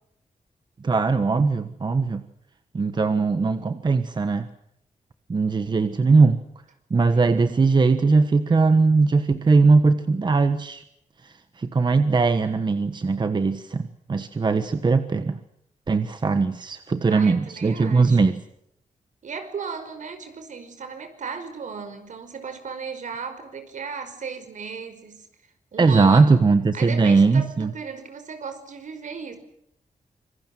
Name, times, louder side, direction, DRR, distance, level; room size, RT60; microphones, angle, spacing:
voice 1, 0.8-2.2 2.7-4.5 5.3-6.4 6.9-10.8 11.2-15.4 15.9-18.4 25.8-27.7, right 4 dB, 35° right, 10 dB, 1.3 m, -20 dB
voice 2, 7.1-7.5 17.0-18.4 19.2-25.3 25.7-26.4 26.7-29.4, right 5 dB, 65° right, 9 dB, 5.2 m, -36 dB
26.5 x 24.5 x 7.6 m, 0.75 s
wide cardioid pair, 145°, 14 cm